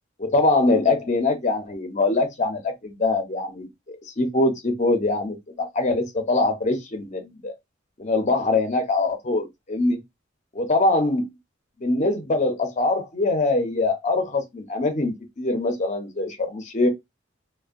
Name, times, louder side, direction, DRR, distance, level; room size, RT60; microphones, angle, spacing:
voice 1, 0.2-7.5 8.0-10.0 10.5-11.3 11.8-16.9, left 2 dB, 40° left, 0.6 m, -23 dB
2.5 x 2.1 x 2.4 m
head